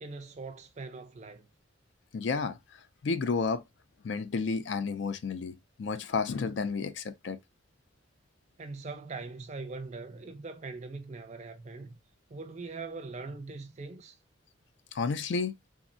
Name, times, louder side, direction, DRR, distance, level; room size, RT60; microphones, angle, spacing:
voice 1, 0.0-1.5 8.6-11.9 12.3-14.2, right 3 dB, 35° right, 0.5 m, -41 dB
voice 2, 2.1-3.6 4.0-7.4 14.9-15.5, left 4 dB, 65° left, 0.4 m, -31 dB
3.5 x 2.1 x 2.5 m
head